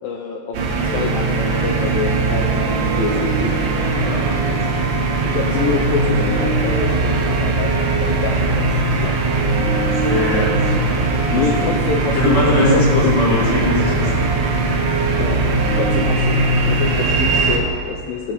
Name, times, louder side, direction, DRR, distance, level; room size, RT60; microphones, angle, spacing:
voice 1, 0.0-3.5 5.3-8.7 9.0-9.5 11.3-12.4 12.7-13.2 15.2-15.4 15.7-16.4 16.6-18.3, left 5 dB, 90° left, 0 dB, 2.0 m, -26 dB
sound 1, 0.5-17.6, right 3 dB, 55° right, 2.0 m, -19 dB
voice 2, 4.0-4.6 9.8-10.7 11.2-11.7 12.1-14.2, left 2 dB, 40° left, -6 dB, 3.2 m, -21 dB
16.0 x 6.3 x 6.9 m, 2.4 s
omnidirectional pair, 5.1 m